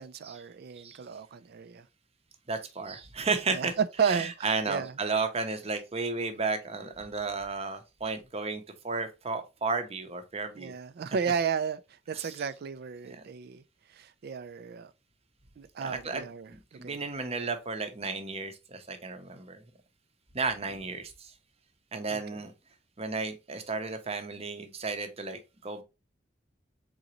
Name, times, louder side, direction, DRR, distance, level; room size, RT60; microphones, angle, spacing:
voice 1, 0.0-1.8 3.5-4.9 10.6-11.8 12.1-13.6 13.9-14.9 15.6-17.1 22.1-22.2, right 6 dB, 55° right, 0.4 m, -33 dB
voice 2, 2.5-10.7 11.1-11.3 12.1-12.5 13.1-13.2 15.8-19.6 20.3-21.3 21.9-22.5 23.0-25.8, right 4 dB, 35° right, 0.7 m, -33 dB
3.9 x 3.9 x 3.0 m
head